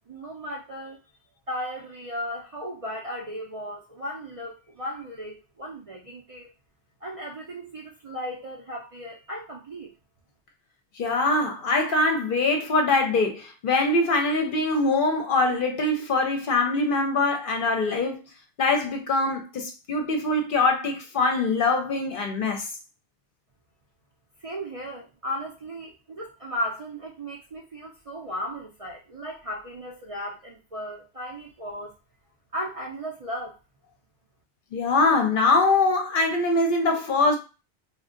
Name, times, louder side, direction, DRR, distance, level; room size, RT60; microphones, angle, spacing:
voice 1, 0.1-1.1 1.5-6.5 7.0-9.9 24.4-31.9 32.5-33.6, equal, 45° right, 0.5 m, -36 dB
voice 2, 11.0-18.2 18.6-22.7 34.7-37.4, left 3 dB, 60° left, 0.7 m, -23 dB
2.4 x 2.1 x 3.7 m
omnidirectional pair, 1.1 m